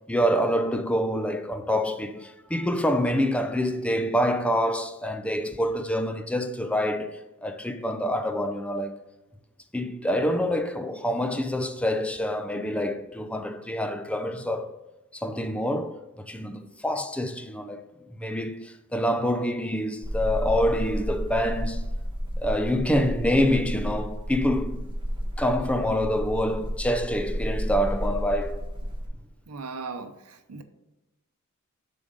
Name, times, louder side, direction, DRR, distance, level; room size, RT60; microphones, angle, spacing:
voice 1, 0.1-9.0 9.7-14.7 15.1-17.8 18.1-21.9 22.4-24.8 25.4-28.6 30.5-30.6, equal, 5° left, 0.4 m, -26 dB
sound 1, 20.0-29.1, equal, 20° right, 1.1 m, -31 dB
voice 2, 29.5-30.6, right 4 dB, 85° right, 0.7 m, -38 dB
6.9 x 3.9 x 5.2 m
head